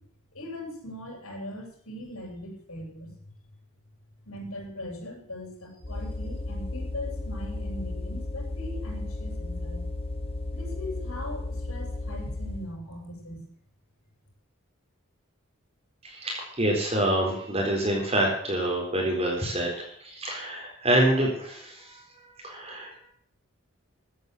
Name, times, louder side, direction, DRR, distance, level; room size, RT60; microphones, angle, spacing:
voice 1, 0.3-3.1 4.3-9.8 10.5-13.5, left 1 dB, 85° left, -1 dB, 7.1 m, -40 dB
sound 1, 5.8-12.7, left 2 dB, 25° left, 1.0 m, -34 dB
voice 2, 16.0-22.0 22.4-23.1, right 1 dB, 30° right, 0 dB, 4.1 m, -27 dB
15.0 x 9.3 x 8.0 m, 0.63 s
head